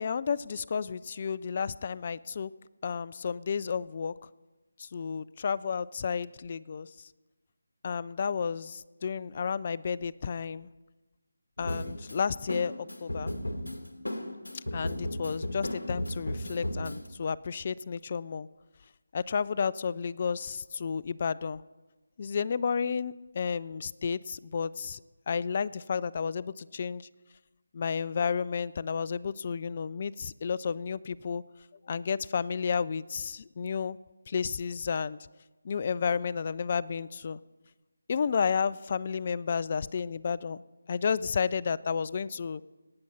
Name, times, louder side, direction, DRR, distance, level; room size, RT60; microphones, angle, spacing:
voice 1, 0.0-2.5 2.8-4.1 4.8-6.9 7.8-10.7 11.6-12.7 13.0-13.3 14.7-18.5 19.1-21.6 22.2-25.0 25.3-27.0 27.7-31.4 31.9-34.0 34.3-35.2 35.6-37.4 38.1-40.6 40.9-42.6, left 6 dB, 40° left, 19 dB, 0.3 m, -31 dB
sound 1, 11.6-17.1, left 1 dB, 85° left, 1.8 m, -35 dB
18.5 x 7.6 x 5.5 m, 1.1 s
figure-of-eight pair, 160°, 0 cm